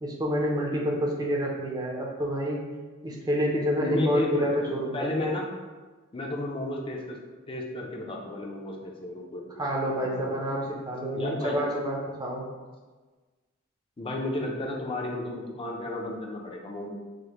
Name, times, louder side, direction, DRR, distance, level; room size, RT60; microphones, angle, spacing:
voice 1, 0.0-2.6 3.0-5.1 9.6-12.4, equal, 20° right, -1 dB, 0.6 m, -28 dB
voice 2, 3.8-5.5 6.1-7.2 7.5-9.5 10.0-10.1 11.1-11.6 14.0-16.9, left 2 dB, 25° left, -1 dB, 0.5 m, -32 dB
4.9 x 2.1 x 2.9 m, 1.3 s
head